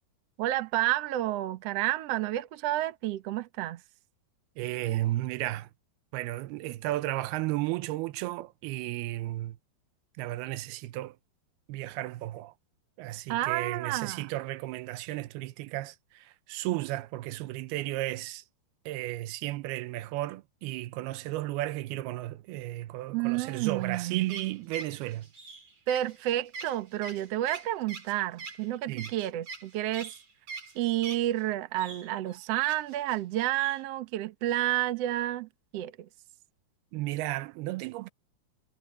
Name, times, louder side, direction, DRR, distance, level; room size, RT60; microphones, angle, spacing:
voice 1, 0.4-3.8 13.3-14.3 23.1-24.3 25.9-30.1 30.7-36.1, right 14 dB, 65° right, 1.6 m, -30 dB
voice 2, 4.6-5.7 6.1-9.6 10.2-11.2 11.7-12.5 13.0-18.4 18.9-25.3 28.9-29.1 36.9-38.1, right 16 dB, 85° right, 2.7 m, -34 dB
sound 1, 23.8-31.4 31.8-33.2 33.5-33.8, right 4 dB, 45° right, 5.1 m, -43 dB
omnidirectional pair, 4.4 m